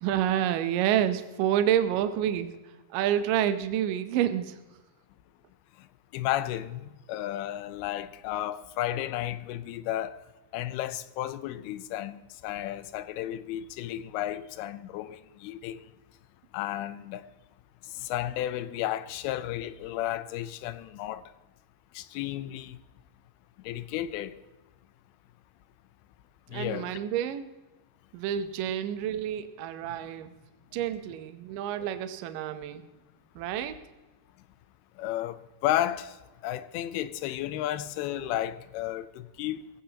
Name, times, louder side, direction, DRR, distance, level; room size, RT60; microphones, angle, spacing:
voice 1, 0.0-2.5 2.9-4.6 26.5-27.5 28.1-30.4 30.7-32.8 33.4-33.8, right 10 dB, 75° right, 2.2 m, -28 dB
voice 2, 6.1-10.2 10.5-15.9 16.5-17.3 17.9-21.2 21.9-22.8 23.6-24.4 26.5-27.0 31.8-32.0 35.0-36.2 36.4-39.7, left 13 dB, 85° left, 2.7 m, -33 dB
21.0 x 16.0 x 2.9 m
omnidirectional pair, 4.4 m